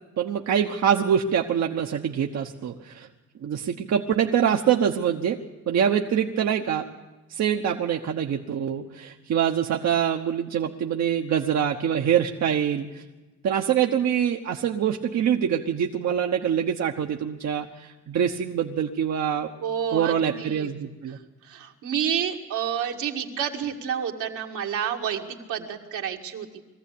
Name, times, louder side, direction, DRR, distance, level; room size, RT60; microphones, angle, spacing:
voice 1, 0.2-3.1 3.4-5.4 5.7-6.9 7.3-13.0 13.4-19.5 19.9-21.2, right 8 dB, 60° right, 2 dB, 1.1 m, -24 dB
voice 2, 19.6-20.7 21.1-21.2 21.4-26.6, right 8 dB, 80° right, 1 dB, 2.1 m, -29 dB
21.5 x 14.5 x 8.5 m, 1.2 s
cardioid pair, 90°, 30 cm